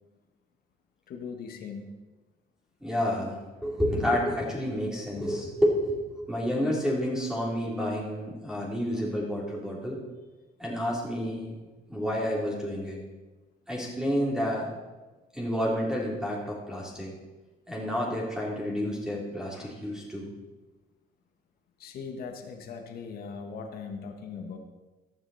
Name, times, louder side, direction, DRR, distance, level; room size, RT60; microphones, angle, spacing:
voice 1, 1.1-1.9 21.8-24.6, left 5 dB, 65° left, 5 dB, 1.6 m, -39 dB
voice 2, 2.8-10.0 10.6-11.5 11.9-13.0 13.7-14.7 15.3-17.1 17.7-20.3, equal, 5° right, -4 dB, 3.3 m, -29 dB
14.5 x 9.8 x 4.2 m, 1.2 s
cardioid pair, 110°, 17 cm